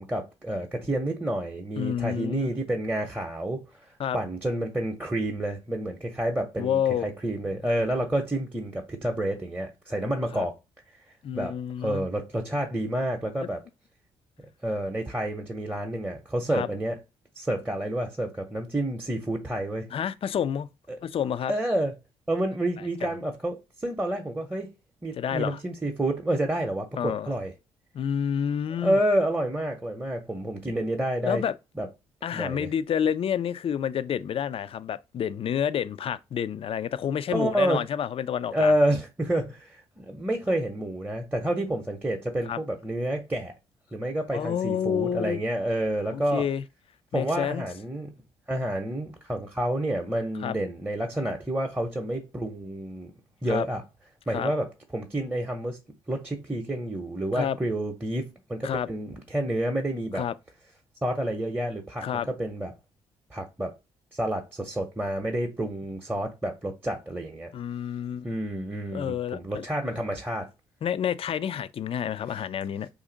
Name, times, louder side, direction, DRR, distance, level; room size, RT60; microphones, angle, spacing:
voice 1, 0.0-3.9 4.1-10.5 11.3-11.5 11.8-13.6 14.6-17.0 17.4-19.9 20.9-21.0 21.5-21.9 22.3-24.7 25.0-27.5 28.8-31.4 31.8-31.9 32.3-32.7 37.3-37.8 38.5-43.5 43.9-46.5 47.1-48.1 48.5-53.1 53.4-53.8 54.3-54.7 54.9-55.8 56.1-60.2 61.0-62.7 63.3-63.7 64.1-67.5 68.2-70.5, right 1 dB, 10° right, 0.7 m, -29 dB
voice 2, 1.8-2.5 4.0-4.2 6.6-7.1 10.3-10.5 11.2-12.1 16.5-16.7 19.9-20.7 21.0-21.5 23.0-23.1 25.1-25.6 27.0-27.3 27.9-29.0 31.2-31.5 32.2-38.7 42.5-42.6 44.3-45.4 46.1-46.6 47.1-47.7 50.4-50.5 53.5-53.7 54.3-54.5 57.4-57.6 58.6-58.9 60.1-60.3 62.0-62.3 67.5-68.3 68.9-69.6 70.8-72.9, left 8 dB, 45° left, 0.3 m, -29 dB
2.7 x 2.5 x 3.8 m
hypercardioid pair, 50°, 14 cm